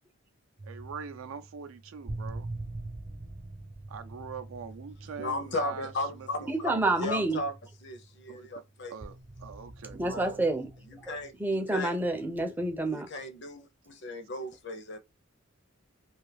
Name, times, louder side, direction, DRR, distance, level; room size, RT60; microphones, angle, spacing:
sound 1, 0.6-8.5 9.0-11.7 12.5-12.7, right 2 dB, 45° right, 0.6 m, -44 dB
voice 1, 0.6-2.5 3.9-6.7 8.3-8.5 8.9-10.5, right 6 dB, 80° right, 0.4 m, -43 dB
voice 2, 5.2-7.6 7.8-8.9 10.1-10.3 11.0-11.9 13.1-15.0, left 2 dB, 55° left, 0.6 m, -36 dB
voice 3, 6.5-7.5 9.9-13.1, right 2 dB, 10° right, 0.4 m, -29 dB
2.6 x 2.3 x 3.3 m
head